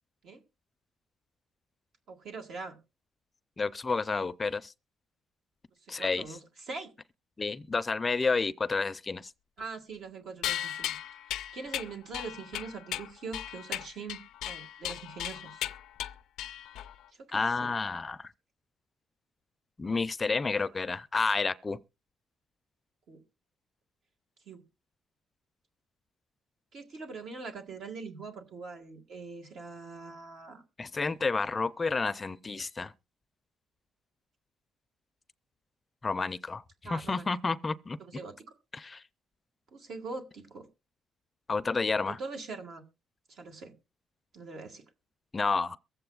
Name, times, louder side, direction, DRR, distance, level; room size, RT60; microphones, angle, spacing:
voice 1, 2.1-2.8 5.8-6.9 9.6-10.9 11.3-14.2 14.5-15.7 17.2-17.7 23.1-23.2 24.4-24.6 26.7-30.6 36.8-37.3 38.0-38.3 39.7-40.6 42.0-42.8 43.3-43.7 44.3-44.8, right 4 dB, 70° right, 1.7 m, -42 dB
voice 2, 3.6-4.7 5.9-6.2 7.4-9.3 17.3-18.3 19.8-21.8 30.8-32.9 36.0-36.6 36.9-38.0 38.7-39.0 41.5-42.2 45.3-45.8, left 4 dB, 30° left, 0.5 m, -30 dB
sound 1, 10.4-17.0, left 12 dB, 90° left, 0.5 m, -37 dB
22.5 x 7.7 x 2.3 m
cardioid pair, 90°, 0 cm